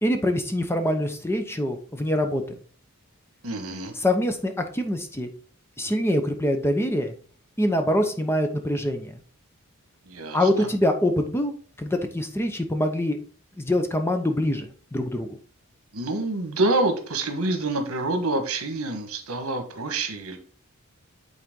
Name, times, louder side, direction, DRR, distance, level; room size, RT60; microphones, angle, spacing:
voice 1, 0.0-2.4 4.0-5.3 5.8-7.1 7.6-9.1 10.3-11.5 11.8-13.2 13.6-14.7 14.9-15.3, left 1 dB, 10° left, 6 dB, 0.8 m, -24 dB
voice 2, 3.4-3.9 10.0-10.7 15.9-20.4, right 2 dB, 75° right, 6 dB, 1.3 m, -27 dB
8.8 x 4.1 x 3.7 m, 0.43 s
head